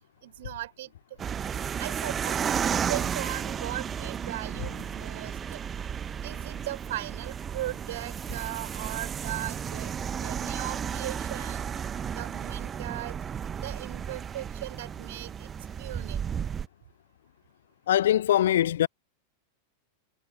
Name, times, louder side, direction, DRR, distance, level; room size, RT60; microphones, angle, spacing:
voice 1, 0.2-0.9 1.8-5.6 6.2-9.9 10.2-11.7 12.1-13.2 13.6-15.5 15.8-16.2, right 15 dB, 55° right, 6.0 m, -38 dB
sound 1, 1.2-16.7, right 8 dB, 20° right, 0.8 m, -33 dB
voice 2, 17.9-18.9, left 11 dB, 60° left, 0.3 m, -22 dB
figure-of-eight pair, 90°, 0 cm